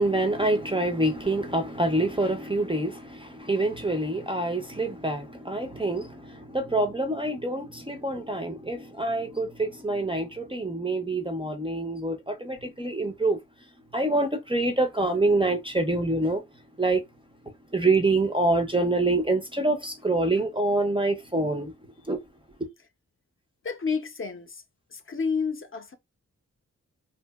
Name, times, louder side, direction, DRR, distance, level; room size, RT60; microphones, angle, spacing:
voice 1, 0.0-13.4 13.9-16.4 16.8-17.0 17.7-21.7 22.1-22.2, right 2 dB, 15° right, 0.4 m, -26 dB
voice 2, 23.6-24.6 24.9-25.9, left 5 dB, 40° left, 0.5 m, -30 dB
2.7 x 2.6 x 2.2 m
wide cardioid pair, 130°, 32 cm